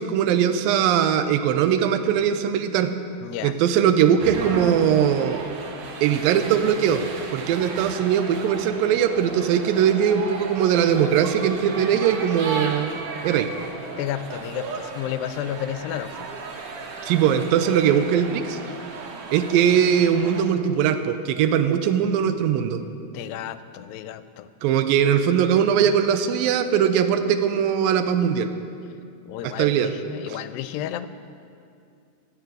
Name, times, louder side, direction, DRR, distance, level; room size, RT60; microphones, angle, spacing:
voice 1, 0.0-2.9 3.4-5.4 6.0-7.0 7.3-12.9 13.2-13.5 17.0-18.6 19.3-22.8 24.6-28.5 29.4-29.9, right 8 dB, 90° right, 9 dB, 2.4 m, -20 dB
voice 2, 3.2-3.5 14.0-16.3 23.1-24.5 29.3-31.1, left 11 dB, 85° left, 12 dB, 2.3 m, -32 dB
sound 1, 4.2-20.4, right 4 dB, 70° right, 2.5 m, -35 dB
16.0 x 6.9 x 8.1 m, 2.4 s
omnidirectional pair, 4.0 m